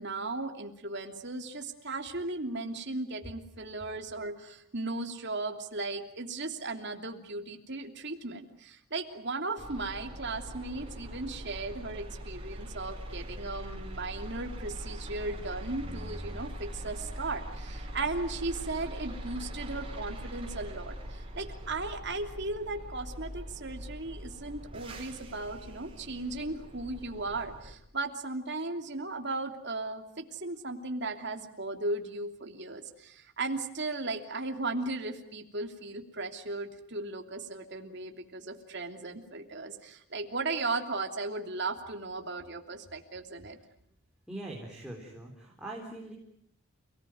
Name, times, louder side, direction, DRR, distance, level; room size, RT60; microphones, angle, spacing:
voice 1, 0.0-43.6, right 3 dB, 50° right, 4 dB, 3.0 m, -36 dB
sound 1, 9.6-27.7, equal, 25° right, 5.4 m, -42 dB
voice 2, 44.3-46.1, right 1 dB, 5° right, -2 dB, 4.1 m, -42 dB
29.5 x 19.0 x 9.4 m, 0.69 s
head